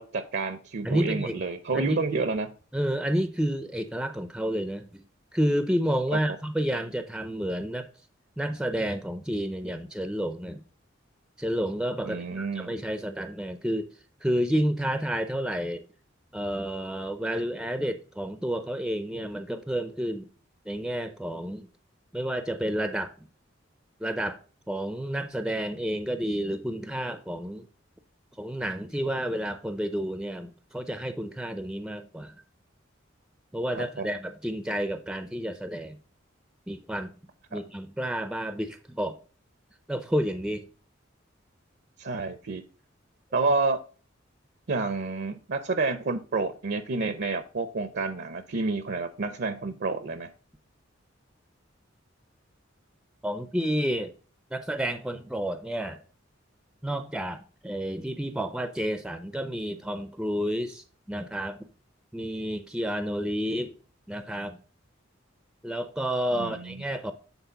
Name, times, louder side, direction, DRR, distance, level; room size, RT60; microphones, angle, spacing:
voice 1, 0.0-2.5 6.1-6.2 12.1-12.7 33.7-34.1 37.5-37.6 42.0-42.6 43.3-43.8 44.7-50.3 66.4-66.8, right 3 dB, 55° right, 0.6 m, -29 dB
voice 2, 0.8-1.4 1.7-2.0 2.7-5.0 5.3-7.9 8.4-10.6 11.4-13.9 14.2-15.8 16.3-20.3 20.7-21.7 22.1-23.1 24.0-24.4 24.7-27.7 28.4-32.3 33.5-36.0 36.7-37.1 37.5-39.2 39.9-40.7 53.2-54.1 54.5-56.0 56.8-61.6 62.1-63.7 64.1-64.6 65.6-67.1, equal, 5° right, 0.5 m, -30 dB
8.1 x 4.0 x 3.9 m
head